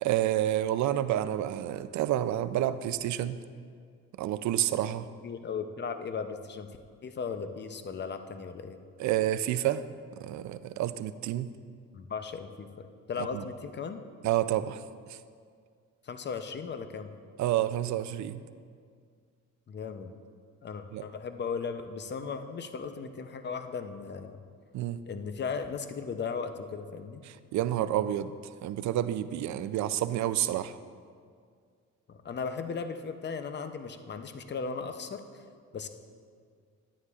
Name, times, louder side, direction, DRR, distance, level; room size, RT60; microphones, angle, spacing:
voice 1, 0.0-3.4 4.2-5.1 9.0-9.8 10.2-11.5 13.2-13.4 14.2-14.8 15.1-15.2 17.4-18.4 20.9-21.0 24.7-25.0 27.2-28.3 28.6-30.8, right 12 dB, 70° right, 13 dB, 0.4 m, -29 dB
voice 2, 5.2-6.7 7.0-8.8 11.9-14.0 16.0-17.1 19.7-20.1 20.6-24.4 25.1-27.2 32.1-35.2 35.7-35.9, left 5 dB, 35° left, 8 dB, 0.6 m, -37 dB
11.0 x 9.3 x 2.4 m, 2.1 s
cardioid pair, 90°, 30 cm